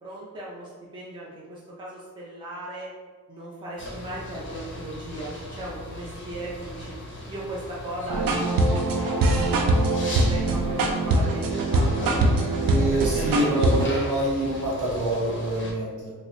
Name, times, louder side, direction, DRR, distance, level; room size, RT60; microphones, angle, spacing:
voice 1, 0.0-2.9 3.3-6.9 7.3-12.1, right 1 dB, 15° right, -7 dB, 0.5 m, -37 dB
sound 1, 3.8-15.7, left 1 dB, 35° left, 0.6 m, -38 dB
sound 2, 8.1-13.9, right 2 dB, 75° right, 0.5 m, -22 dB
voice 2, 12.6-16.1, right 1 dB, 60° right, -6 dB, 1.2 m, -26 dB
3.9 x 2.0 x 3.0 m, 1.4 s
wide cardioid pair, 165°, 34 cm